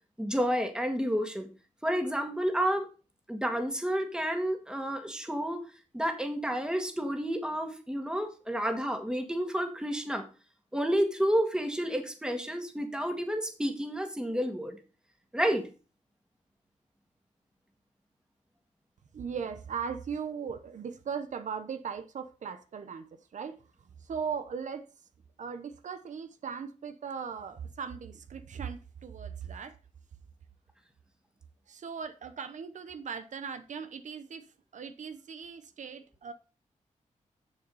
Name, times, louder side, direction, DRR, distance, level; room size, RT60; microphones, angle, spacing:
voice 1, 0.2-1.5 1.8-2.9 3.3-5.6 5.9-10.3 10.7-14.8 15.3-15.6, equal, 5° right, 5 dB, 1.9 m, -30 dB
voice 2, 19.1-24.9 25.4-29.8 31.7-36.3, right 6 dB, 70° right, 10 dB, 0.9 m, -38 dB
7.2 x 6.8 x 5.4 m, 0.35 s
cardioid pair, 80°, 13 cm